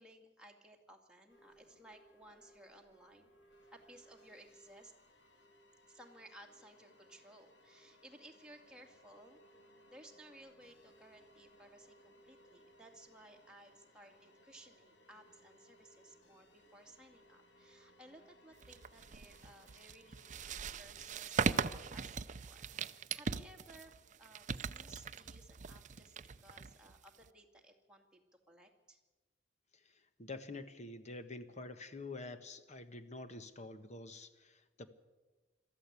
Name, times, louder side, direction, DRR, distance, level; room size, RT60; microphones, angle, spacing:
voice 1, 0.0-3.3 3.7-4.9 5.8-9.4 9.9-20.5 20.8-23.9 24.2-28.2 28.5-29.0, right 1 dB, 5° right, 1 dB, 2.4 m, -59 dB
sound 1, 1.3-20.5, equal, 75° left, 2.5 m, -64 dB
sound 2, 18.6-27.3, right 5 dB, 45° right, 0.6 m, -40 dB
voice 2, 30.2-34.9, left 2 dB, 40° left, 9 dB, 1.3 m, -47 dB
22.5 x 14.0 x 8.4 m, 1.2 s
head